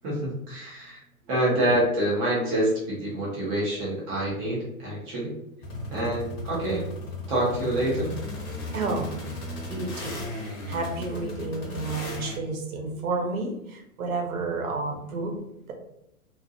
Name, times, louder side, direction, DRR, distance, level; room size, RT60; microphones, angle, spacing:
voice 1, 0.0-1.0 1.3-5.3 5.9-6.9 7.3-8.2, right 1 dB, 10° right, -6 dB, 0.4 m, -26 dB
sound 1, 5.6-12.4, left 1 dB, 40° left, 0.9 m, -36 dB
voice 2, 8.5-9.1 9.7-15.4, right 3 dB, 65° right, 2 dB, 0.8 m, -31 dB
2.4 x 2.1 x 2.6 m, 0.80 s
hypercardioid pair, 120°, 44 cm